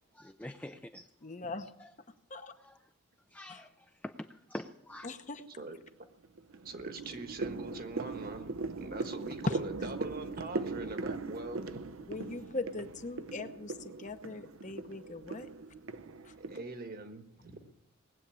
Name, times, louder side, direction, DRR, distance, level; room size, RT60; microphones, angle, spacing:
voice 1, 0.1-1.1 2.6-2.8 3.3-3.7 4.0-5.1, left 1 dB, 5° left, 0.5 m, -44 dB
voice 2, 1.2-1.7 2.3-2.5 3.5-3.6 5.0-5.4 9.5-9.6 12.1-15.5 16.2-16.3, left 2 dB, 35° left, 0.9 m, -39 dB
sound 1, 4.9-5.4 5.9-16.6, right 3 dB, 65° right, 0.6 m, -40 dB
voice 3, 6.5-12.1 16.4-17.7, right 2 dB, 45° right, 1.4 m, -43 dB
19.5 x 8.0 x 8.6 m
head